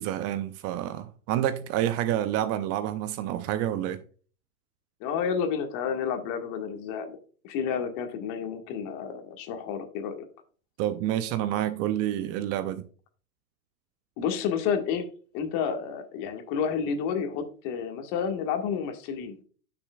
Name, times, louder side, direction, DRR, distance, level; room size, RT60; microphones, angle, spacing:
voice 1, 0.0-4.0 10.8-12.9, right 12 dB, 35° right, 0.6 m, -28 dB
voice 2, 5.0-7.2 7.4-10.3 14.2-15.1 15.3-19.4, left 7 dB, 45° left, 1.8 m, -30 dB
10.0 x 6.1 x 2.3 m
hypercardioid pair, 105°, 43 cm